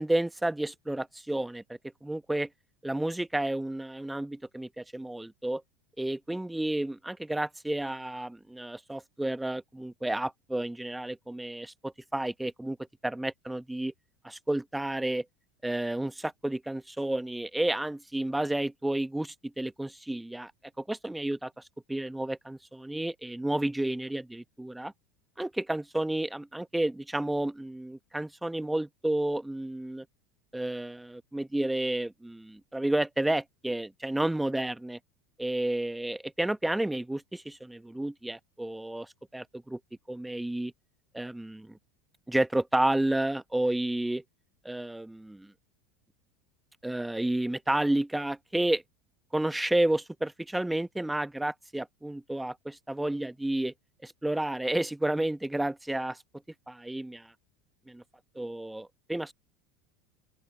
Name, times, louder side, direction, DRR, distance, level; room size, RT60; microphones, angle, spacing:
voice 1, 0.0-1.6 2.0-2.5 2.8-5.6 6.0-12.8 13.0-13.9 14.2-15.2 15.6-20.5 20.8-21.5 21.9-24.9 25.4-30.0 30.5-35.0 35.4-39.8 40.1-40.7 41.1-41.8 42.3-44.2 44.6-45.5 46.8-48.8 49.3-53.7 54.0-56.2 56.7-57.3 57.9-58.0 58.3-59.3, right 1 dB, 5° right, 1.3 m, -31 dB
open air
hypercardioid pair, 85°, 0 cm